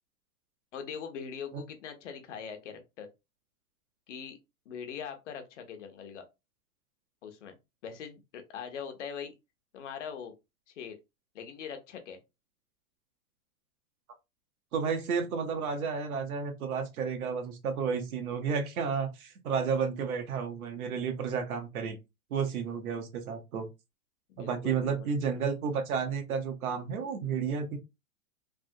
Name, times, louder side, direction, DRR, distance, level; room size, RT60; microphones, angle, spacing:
voice 1, 0.7-3.1 4.1-4.4 4.7-6.2 7.2-7.6 7.8-9.3 9.7-10.3 10.7-11.0 11.3-12.2 24.3-25.1, left 7 dB, 55° left, 0.8 m, -42 dB
voice 2, 14.7-22.0 22.3-23.7 24.4-27.8, right 6 dB, 70° right, 1.0 m, -32 dB
3.4 x 2.0 x 2.6 m
hypercardioid pair, 165°, 45 cm